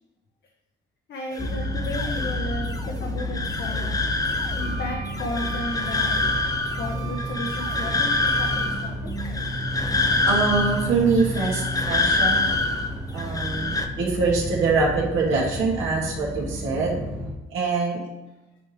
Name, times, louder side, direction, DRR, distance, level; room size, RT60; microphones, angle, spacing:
voice 1, 1.1-4.0 4.6-6.3 6.8-9.1, left 2 dB, 60° left, 0 dB, 0.9 m, -34 dB
sound 1, 1.3-13.9, left 3 dB, 20° left, 0.6 m, -27 dB
sound 2, 1.4-17.3, equal, 5° right, 1.1 m, -32 dB
sound 3, 4.6-8.7, right 8 dB, 70° right, 1.0 m, -37 dB
voice 2, 10.3-12.6 13.1-17.0 17.5-18.0, right 4 dB, 85° right, -4 dB, 2.1 m, -24 dB
9.0 x 3.4 x 3.1 m, 0.99 s
cardioid pair, 90°, 20 cm